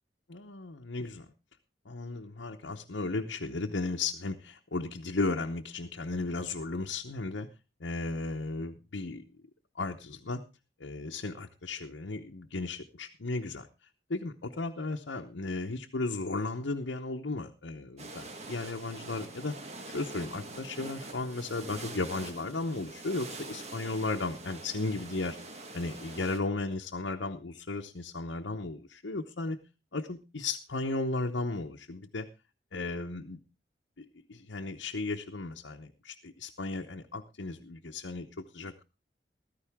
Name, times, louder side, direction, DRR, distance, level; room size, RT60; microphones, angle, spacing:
voice 1, 0.3-1.3 1.9-7.5 7.8-9.2 9.8-10.4 10.8-13.7 14.1-19.6 19.9-25.4 25.7-29.6 29.9-32.3 32.7-33.4 34.0-38.8, left 3 dB, 80° left, 1 dB, 0.9 m, -35 dB
sound 1, 18.0-26.4, right 2 dB, 35° right, 1.4 m, -44 dB
14.5 x 13.5 x 3.5 m, 0.28 s
head